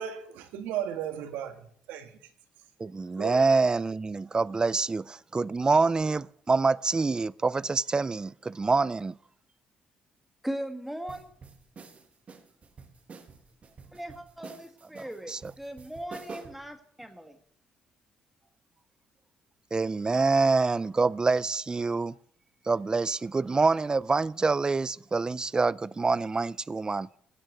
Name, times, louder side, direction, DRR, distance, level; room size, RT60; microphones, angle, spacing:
voice 1, 0.0-2.1 3.2-3.4, right 10 dB, 85° right, 1.6 m, -35 dB
voice 2, 2.8-9.2 15.3-15.5 19.7-22.1 22.7-27.1, right 4 dB, 25° right, 0.4 m, -26 dB
voice 3, 10.4-11.3 13.9-17.4, right 1 dB, 5° right, 1.5 m, -38 dB
sound 1, 11.1-16.7, right 5 dB, 50° right, 1.9 m, -48 dB
16.5 x 6.2 x 8.3 m
supercardioid pair, 60°, 3 cm